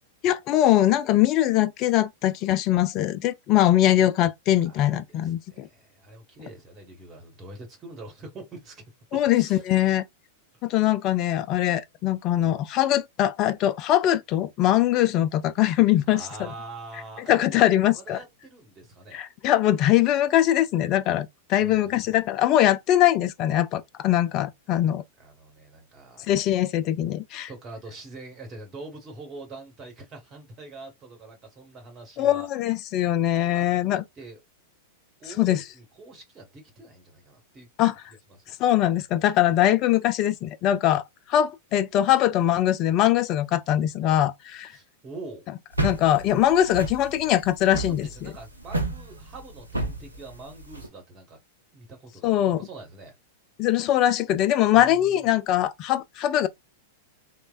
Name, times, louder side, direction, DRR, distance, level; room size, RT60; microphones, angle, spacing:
voice 1, 0.2-5.7 9.1-10.0 10.6-16.5 17.3-18.2 19.1-25.0 26.3-27.5 32.2-34.0 35.4-35.6 37.8-37.9 38.6-41.0 41.3-44.7 45.8-48.3 52.2-52.6 53.6-56.5, left 12 dB, 40° left, 0.3 m, -22 dB
voice 2, 4.6-8.8 9.1-9.6 10.5-10.9 16.1-17.6 17.9-19.2 21.6-21.9 25.2-26.3 27.5-32.5 33.5-33.7 34.2-34.4 35.2-37.7 44.7-45.5 47.7-51.4 51.7-53.1 54.7-55.3, right 3 dB, 25° right, 1.3 m, -44 dB
sound 1, 45.7-50.9, right 2 dB, 85° right, 0.7 m, -31 dB
3.1 x 2.1 x 2.5 m
figure-of-eight pair, 95°, 0 cm